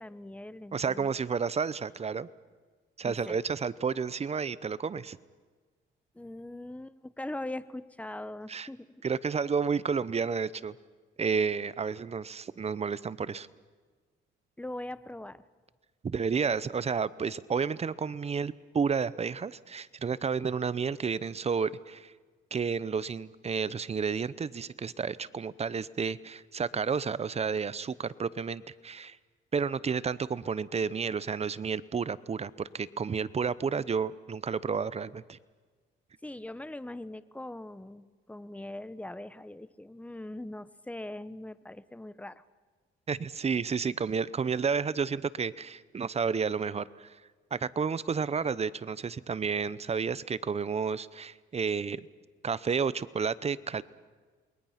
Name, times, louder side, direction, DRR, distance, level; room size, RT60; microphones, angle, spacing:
voice 1, 0.0-1.1 3.0-3.4 6.1-9.0 14.6-15.4 36.2-42.4, left 1 dB, 5° left, 15 dB, 0.8 m, -41 dB
voice 2, 0.7-2.3 3.0-5.2 8.5-8.7 9.0-10.8 11.2-13.5 16.0-22.1 22.5-29.2 29.5-35.4 43.1-47.2 47.5-52.1 52.4-53.8, right 6 dB, 30° right, 18 dB, 0.7 m, -31 dB
28.5 x 21.5 x 5.8 m, 1.5 s
cardioid pair, 90°, 20 cm